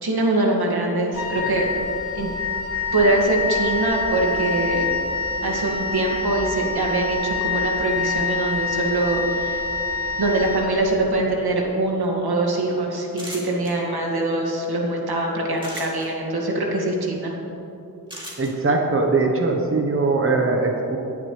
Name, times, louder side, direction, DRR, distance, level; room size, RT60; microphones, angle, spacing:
voice 1, 0.0-1.7 2.1-2.3 2.9-4.8 5.4-9.6 10.2-17.3, right 2 dB, 80° right, -1 dB, 2.2 m, -23 dB
Wind instrument woodwind instrument, 1.1-11.2, left 4 dB, 40° left, 2.2 m, -26 dB
sound 1, 13.1-13.7 15.6-16.1 18.1-18.5, equal, 15° right, 2.9 m, -36 dB
voice 2, 18.4-21.0, right 3 dB, 35° right, 1 dB, 1.1 m, -21 dB
18.5 x 11.0 x 3.3 m, 2.9 s
wide cardioid pair, 145°, 37 cm